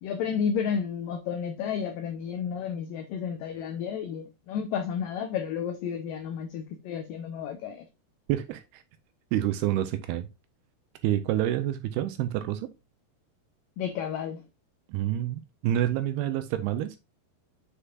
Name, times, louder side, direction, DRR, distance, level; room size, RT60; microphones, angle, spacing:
voice 1, 0.0-7.8 13.8-14.4, left 7 dB, 85° left, 1.9 m, -32 dB
voice 2, 8.3-8.8 9.3-10.3 11.0-12.7 14.9-17.0, right 12 dB, 80° right, 2.4 m, -28 dB
7.4 x 6.6 x 2.4 m
omnidirectional pair, 4.9 m